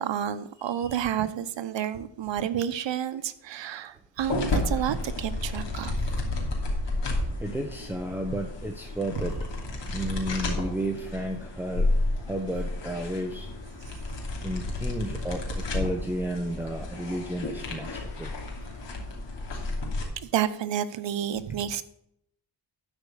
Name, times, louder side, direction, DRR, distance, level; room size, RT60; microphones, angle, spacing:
voice 1, 0.0-6.0 9.2-9.3 20.2-21.8, right 10 dB, 75° right, 11 dB, 0.9 m, -30 dB
voice 2, 0.6-0.9 7.4-9.4 9.7-11.9 12.3-13.5 14.4-18.3, right 1 dB, 5° right, 3 dB, 1.1 m, -32 dB
sound 1, 4.2-20.0, left 2 dB, 75° left, 2.9 m, -31 dB
12.0 x 5.1 x 6.5 m, 0.73 s
cardioid pair, 85°, 44 cm